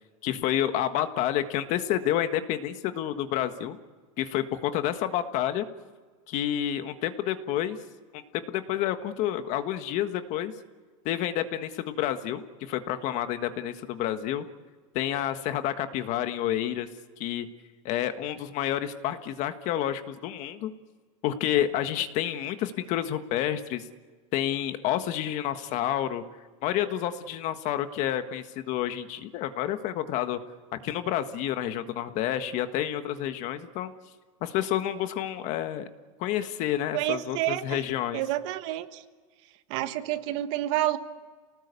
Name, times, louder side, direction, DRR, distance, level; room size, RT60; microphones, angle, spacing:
voice 1, 0.2-3.8 4.2-5.7 6.3-7.8 8.1-10.5 11.0-14.5 14.9-16.9 17.2-17.5 17.8-20.7 21.2-23.8 24.3-26.2 26.6-30.4 30.7-33.9 34.4-35.9 36.2-38.2, left 11 dB, 45° left, 9 dB, 1.5 m, -29 dB
voice 2, 36.9-37.8 38.1-39.0 39.7-41.0, right 14 dB, 60° right, 10 dB, 1.5 m, -29 dB
28.5 x 19.0 x 8.3 m, 1.5 s
supercardioid pair, 150°, 18 cm